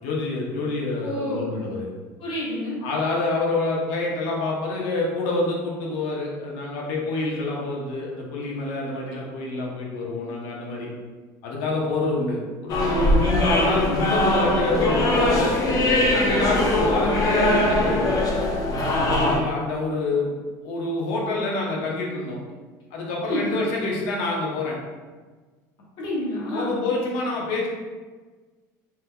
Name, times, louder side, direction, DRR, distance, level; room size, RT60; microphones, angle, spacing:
voice 1, 0.0-1.9 2.8-10.9 11.4-15.5 16.1-18.1 18.9-20.3 20.6-22.4 22.9-24.8 26.5-27.7, left 2 dB, 70° left, -2 dB, 0.9 m, -27 dB
voice 2, 1.0-1.5 2.2-2.8 23.3-23.5 26.0-26.8, left 1 dB, 55° left, -5 dB, 1.2 m, -28 dB
sound 1, 12.7-19.4, left 1 dB, 40° left, 0.6 m, -21 dB
3.7 x 2.8 x 2.3 m, 1.4 s
supercardioid pair, 95°, 10 cm